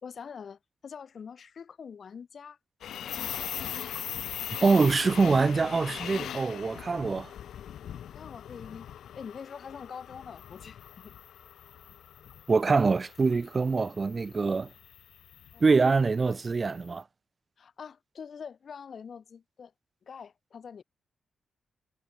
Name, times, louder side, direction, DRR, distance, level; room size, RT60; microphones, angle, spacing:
voice 1, 0.0-2.6 3.0-3.5 8.1-8.9 9.1-11.1 15.5-15.6 17.6-19.7 20.1-20.8, left 6 dB, 50° left, 2.7 m, -44 dB
sound 1, 2.8-16.9, left 10 dB, 85° left, 0.4 m, -41 dB
voice 2, 4.6-7.3 12.5-14.7 15.6-17.0, right 4 dB, 30° right, 0.4 m, -24 dB
wide cardioid pair, 150°, 0 cm